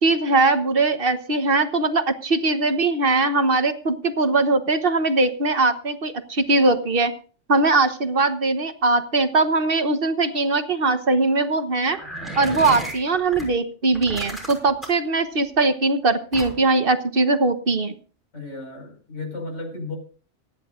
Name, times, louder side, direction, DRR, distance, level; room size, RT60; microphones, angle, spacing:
voice 1, 0.0-7.1 7.5-12.0 12.4-18.0, right 3 dB, 50° right, 9 dB, 1.4 m, -21 dB
sound 1, 11.9-13.5 13.9-15.1 16.3-16.8, right 1 dB, ahead, 6.2 m, -33 dB
voice 2, 18.3-20.0, left 3 dB, 90° left, 3 dB, 5.9 m, -34 dB
26.5 x 10.5 x 2.5 m, 0.40 s
omnidirectional pair, 1.2 m